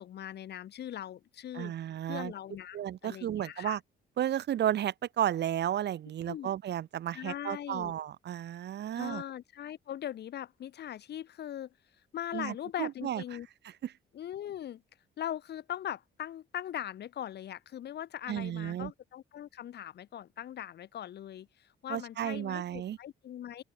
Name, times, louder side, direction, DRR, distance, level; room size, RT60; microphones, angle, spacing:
voice 1, 0.0-1.7 2.1-3.8 6.3-6.5 7.1-7.9 8.9-11.7 12.1-13.5 14.1-14.8 15.2-23.6, left 11 dB, 55° left, 0.7 m, -40 dB
voice 2, 1.5-2.3 2.7-3.8 4.2-9.2 12.3-13.2 13.8-13.9 18.3-18.9 21.9-23.0, right 11 dB, 60° right, 0.8 m, -33 dB
open air
cardioid pair, 90°, 20 cm